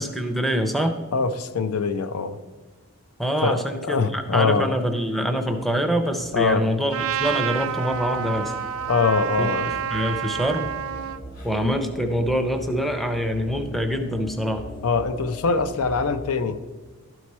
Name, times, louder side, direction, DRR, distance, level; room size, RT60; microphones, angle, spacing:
voice 1, 0.0-0.9 3.2-8.5 9.4-10.7 11.4-14.6, equal, ahead, 4 dB, 0.5 m, -25 dB
voice 2, 1.1-2.4 3.4-3.6 3.8-4.7 6.3-6.6 8.9-9.7 14.8-16.6, left 4 dB, 80° left, 11 dB, 0.5 m, -23 dB
sound 1, 5.3-16.2, equal, 40° left, 1.5 m, -41 dB
Trumpet, 6.9-11.2, right 8 dB, 75° right, 0.4 m, -28 dB
12.0 x 4.7 x 4.3 m, 1.3 s
head